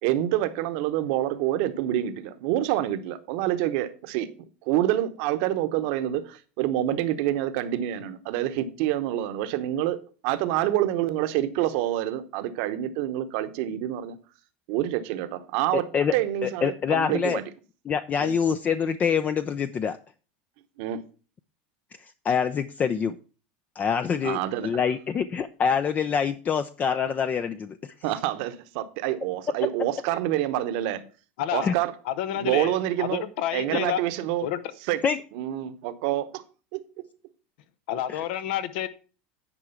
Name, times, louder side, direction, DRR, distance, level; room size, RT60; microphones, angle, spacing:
voice 1, 0.0-4.3 4.7-14.2 14.7-17.4 18.2-18.3 20.8-21.0 24.2-24.7 28.0-31.0 31.5-31.9 32.3-33.2 33.5-34.5 34.9-35.0 35.3-36.4 36.7-36.8, right 13 dB, 65° right, 1.0 m, -27 dB
voice 2, 15.7-16.1 16.4-17.4 17.9-20.0 22.2-23.2 23.8-27.9 31.6-31.7 35.0-35.2 38.1-38.2, left 7 dB, 30° left, 0.5 m, -25 dB
voice 3, 31.4-31.7 32.1-34.0 34.4-34.6 37.9-38.9, left 11 dB, 75° left, 0.9 m, -29 dB
9.9 x 4.9 x 5.7 m
supercardioid pair, 110°, 5 cm